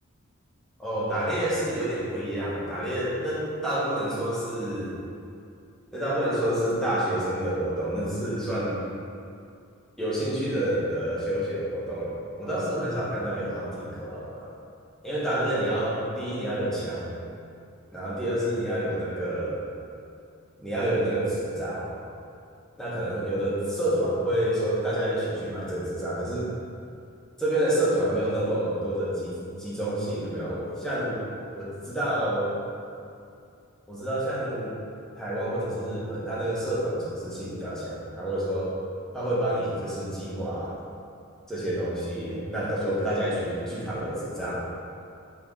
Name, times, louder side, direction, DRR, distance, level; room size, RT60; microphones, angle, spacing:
voice 1, 0.8-5.0 5.9-8.8 10.0-14.5 15.0-17.1 17.9-19.5 20.6-21.9 22.8-26.5 27.4-31.2 31.5-32.5 33.9-34.7 35.2-38.8 39.1-40.7 41.5-44.5, right 1 dB, 5° left, -9 dB, 1.3 m, -28 dB
7.1 x 3.8 x 3.8 m, 2.5 s
head